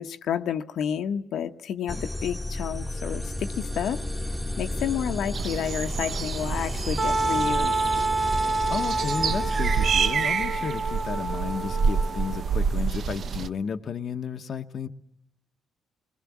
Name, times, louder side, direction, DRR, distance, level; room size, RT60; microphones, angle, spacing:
voice 1, 0.0-4.0 4.6-7.8, left 9 dB, 75° left, 1.2 m, -30 dB
sound 1, 1.9-9.9, left 1 dB, ahead, 1.7 m, -33 dB
sound 2, 5.3-13.5, right 5 dB, 55° right, 0.9 m, -28 dB
Wind instrument woodwind instrument, 7.0-12.6, right 2 dB, 30° right, 1.5 m, -28 dB
voice 2, 8.7-14.9, left 6 dB, 55° left, 1.1 m, -33 dB
28.5 x 21.0 x 7.4 m
cardioid pair, 90°, 0 cm